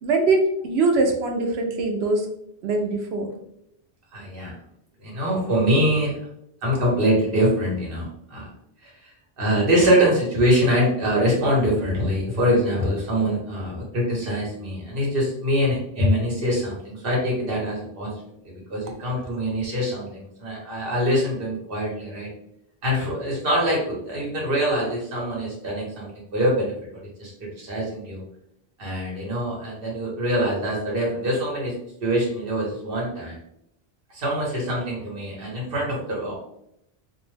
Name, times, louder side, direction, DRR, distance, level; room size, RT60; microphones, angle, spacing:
voice 1, 0.0-2.3 2.6-3.3, right 3 dB, 85° right, 3 dB, 0.8 m, -22 dB
voice 2, 4.1-4.5 5.0-6.1 6.6-8.5 8.8-9.1 9.4-18.1 18.4-22.3 22.8-28.2 28.8-31.7 32.0-33.4 34.1-36.4, equal, 60° right, -4 dB, 1.2 m, -24 dB
2.6 x 2.0 x 3.2 m, 0.77 s
omnidirectional pair, 1.0 m